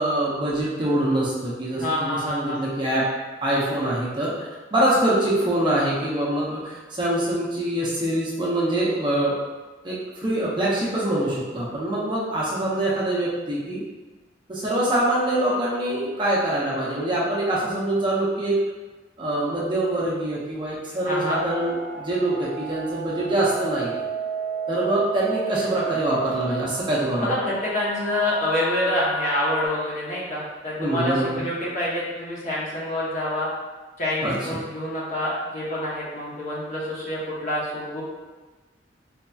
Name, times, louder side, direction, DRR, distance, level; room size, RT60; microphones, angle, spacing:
voice 1, 0.0-3.1 3.4-4.3 4.7-9.3 9.8-13.8 14.5-18.6 19.2-24.1 24.7-27.3 30.8-31.4 34.2-34.3, right 1 dB, 25° right, -6 dB, 0.6 m, -24 dB
voice 2, 1.7-2.6 21.0-21.4 27.2-33.5 34.0-38.0, left 1 dB, 40° left, -7 dB, 0.9 m, -27 dB
sound 1, 21.3-29.7, right 4 dB, 80° left, 1.1 m, -32 dB
4.0 x 2.7 x 2.3 m, 1.2 s
head